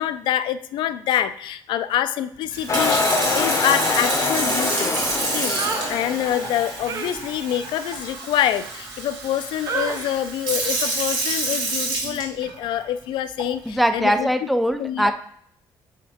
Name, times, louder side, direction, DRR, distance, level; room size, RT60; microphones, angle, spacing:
voice 1, 0.0-3.0 3.3-5.0 5.3-5.5 5.9-14.3 14.8-15.1, left 11 dB, 80° left, 12 dB, 0.4 m, -26 dB
Sink (filling or washing) / Fill (with liquid), 2.5-12.7 13.4-13.7, right 3 dB, 65° right, 2.1 m, -28 dB
sound 1, 2.7-6.8, left 4 dB, 40° left, 0.7 m, -25 dB
sound 2, 5.5-6.0 6.9-9.3 9.7-10.2 10.6-10.9 11.3-11.6, right 5 dB, 45° right, 0.6 m, -32 dB
voice 2, 13.7-15.1, equal, ahead, 8 dB, 0.4 m, -21 dB
8.4 x 3.6 x 3.5 m, 0.65 s
cardioid pair, 125°, 8 cm